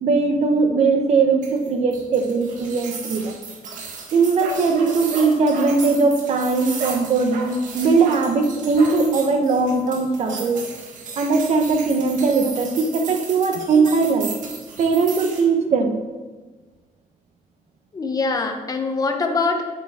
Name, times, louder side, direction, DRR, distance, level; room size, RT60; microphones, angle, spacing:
voice 1, 0.0-3.4 4.1-10.7 11.2-14.3 14.8-16.0, right 4 dB, 50° right, 5 dB, 1.0 m, -19 dB
sound 1, 1.4-15.4, right 5 dB, 70° right, 1.6 m, -36 dB
Bark, 4.4-5.8 6.8-7.1 7.3-7.6 8.0-8.3 8.8-9.0, right 3 dB, 90° right, 1.3 m, -33 dB
voice 2, 17.9-19.6, left 3 dB, 25° left, 4 dB, 0.9 m, -24 dB
9.3 x 8.3 x 3.6 m, 1.3 s
cardioid pair, 155°, 14 cm